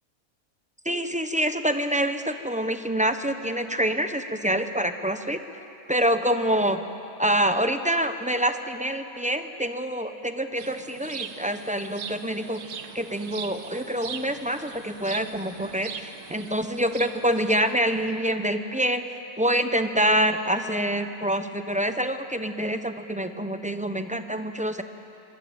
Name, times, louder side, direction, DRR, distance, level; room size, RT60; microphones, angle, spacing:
voice 1, 0.8-5.4 5.9-6.8 7.2-12.6 12.9-19.0 19.4-24.8, right 1 dB, 5° right, 8 dB, 0.7 m, -26 dB
sound 1, 10.6-18.3, right 6 dB, 90° right, 1.6 m, -40 dB
26.0 x 22.5 x 8.9 m, 2.9 s
omnidirectional pair, 1.6 m